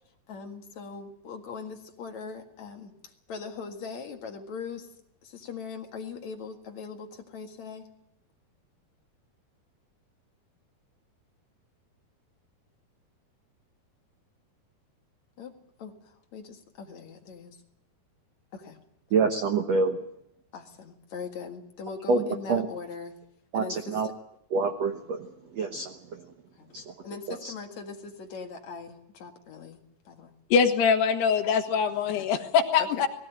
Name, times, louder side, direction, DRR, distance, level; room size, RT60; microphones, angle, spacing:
voice 1, 0.3-2.9 3.3-4.9 5.2-7.9 15.4-16.0 16.3-17.5 18.5-18.8 20.5-23.1 23.5-24.1 26.6-26.7 27.0-30.4 32.8-33.1, left 5 dB, 55° left, 3 dB, 2.6 m, -40 dB
voice 2, 19.1-20.0 22.1-22.6 23.5-24.1 24.5-25.2 25.5-26.2 26.7-26.8 27.3-27.5, right 4 dB, 70° right, 4 dB, 1.6 m, -26 dB
voice 3, 30.5-33.1, left 6 dB, 80° left, 4 dB, 3.5 m, -23 dB
20.0 x 16.5 x 9.1 m, 0.79 s
omnidirectional pair, 4.7 m